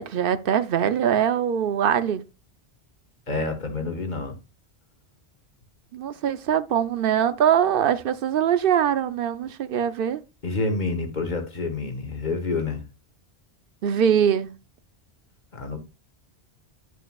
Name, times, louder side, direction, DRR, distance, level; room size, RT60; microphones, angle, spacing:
voice 1, 0.0-2.2 5.9-10.2 13.8-14.5, right 9 dB, 60° right, 0.8 m, -22 dB
voice 2, 3.3-4.4 10.4-12.8 15.5-15.8, left 3 dB, 45° left, 1.5 m, -28 dB
9.1 x 6.6 x 2.3 m
omnidirectional pair, 1.1 m